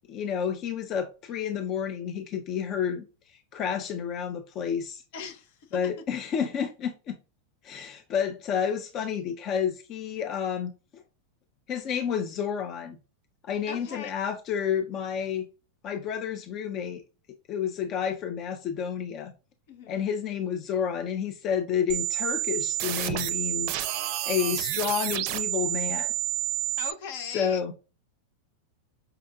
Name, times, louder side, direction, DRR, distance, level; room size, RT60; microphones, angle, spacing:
voice 1, 0.1-5.0 5.7-7.2 7.6-11.0 11.7-13.0 13.4-15.4 15.8-17.0 17.5-19.3 19.9-26.1 27.3-27.7, left 7 dB, 40° left, 0.5 m, -30 dB
voice 2, 5.1-5.8 13.7-14.1 19.7-20.1 26.8-27.7, left 6 dB, 65° left, 0.8 m, -39 dB
sound 1, 21.9-26.9, right 15 dB, 55° right, 0.4 m, -29 dB
5.5 x 2.5 x 2.2 m
hypercardioid pair, 115°, 0 cm